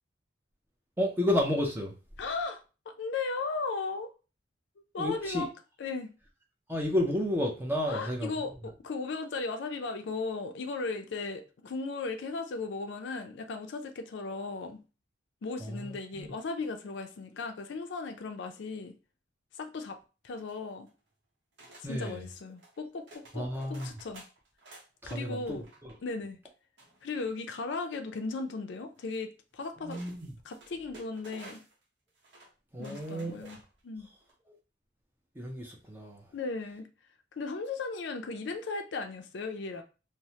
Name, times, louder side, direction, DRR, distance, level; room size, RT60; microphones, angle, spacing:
voice 1, 1.0-1.9 5.0-5.5 6.7-8.3 15.6-16.3 21.8-22.2 23.3-23.9 25.0-25.9 29.8-30.3 32.7-33.5 35.4-36.2, left 1 dB, 10° right, 0.5 m, -32 dB
voice 2, 2.2-4.1 4.9-5.5 5.8-6.1 7.9-14.8 15.4-18.9 19.5-20.0 20.2-20.9 21.9-24.2 25.1-25.7 26.0-26.4 27.0-30.0 30.4-31.6 32.8-33.6 33.8-34.1 36.3-36.9 37.4-39.8, left 3 dB, 65° left, 0.4 m, -36 dB
sound 1, 20.3-21.0 21.6-22.1 22.6-22.8 23.1-25.2 25.5-26.0 26.8-27.6 29.0-29.1 29.9-31.8 32.2-32.5 32.8-33.8 34.2-34.3, right 2 dB, 65° right, 0.8 m, -53 dB
3.0 x 2.0 x 2.7 m
head